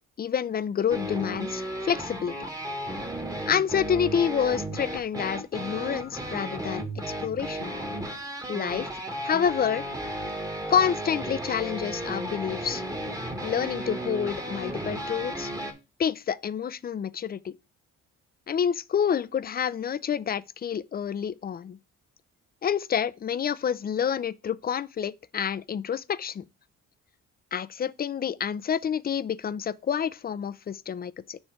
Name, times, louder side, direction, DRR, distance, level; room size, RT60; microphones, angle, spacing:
voice 1, 0.2-2.3 3.5-7.7 8.5-9.9 10.7-12.8 13.4-15.5 16.0-17.5 18.5-21.8 22.6-26.4 27.5-31.4, left 8 dB, 30° left, 0.4 m, -28 dB
sound 1, 0.9-15.7, right 1 dB, 10° right, 1.4 m, -34 dB
7.1 x 3.2 x 4.7 m
cardioid pair, 90°, 30 cm